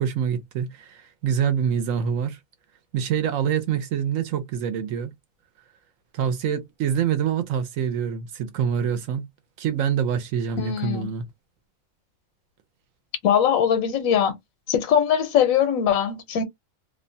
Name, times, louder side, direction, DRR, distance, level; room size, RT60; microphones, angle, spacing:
voice 1, 0.0-2.4 2.9-5.1 6.1-9.3 9.6-11.2, right 8 dB, 75° right, 1.0 m, -25 dB
voice 2, 10.6-11.1 13.2-14.4 14.7-16.4, left 8 dB, 80° left, 1.1 m, -21 dB
2.7 x 2.1 x 2.5 m
omnidirectional pair, 1.4 m